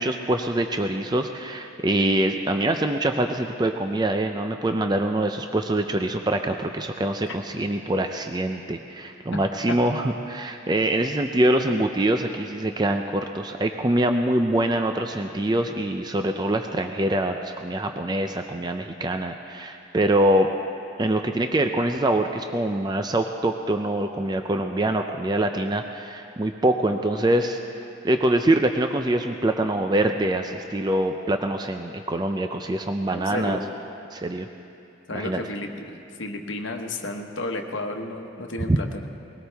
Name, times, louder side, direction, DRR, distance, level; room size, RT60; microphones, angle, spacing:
voice 1, 0.0-20.5 21.0-27.6 28.0-33.6 34.1-34.5 35.1-35.4 38.7-38.8, right 1 dB, 20° right, 5 dB, 0.4 m, -24 dB
voice 2, 33.1-33.6 35.1-39.1, left 2 dB, 70° left, 3 dB, 1.2 m, -32 dB
20.5 x 17.5 x 3.5 m, 2.7 s
head